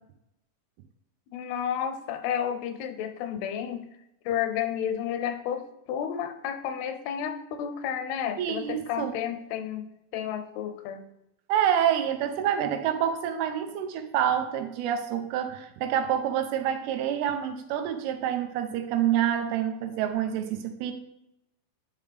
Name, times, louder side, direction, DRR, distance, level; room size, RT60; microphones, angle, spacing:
voice 1, 1.3-3.9 4.3-9.9 10.1-11.0, left 9 dB, 85° left, 9 dB, 2.5 m, -31 dB
voice 2, 8.4-9.2 11.5-20.9, right 9 dB, 90° right, 6 dB, 2.7 m, -27 dB
9.7 x 3.6 x 3.3 m, 0.86 s
omnidirectional pair, 4.4 m